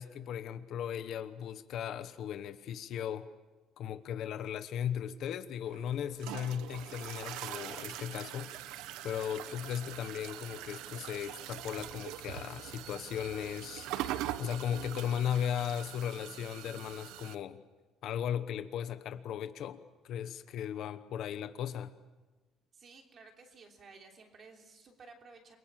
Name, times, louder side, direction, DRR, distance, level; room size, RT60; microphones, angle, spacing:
voice 1, 0.0-3.3 3.8-8.5 9.0-17.6 18.0-19.8 20.0-21.9, left 9 dB, 50° left, 10 dB, 1.0 m, -37 dB
sound 1, 5.6-17.4, right 13 dB, 85° right, 1.0 m, -43 dB
voice 2, 22.7-25.6, right 4 dB, 30° right, 3 dB, 3.3 m, -55 dB
28.5 x 23.0 x 7.5 m, 1.2 s
cardioid pair, 180°, 0 cm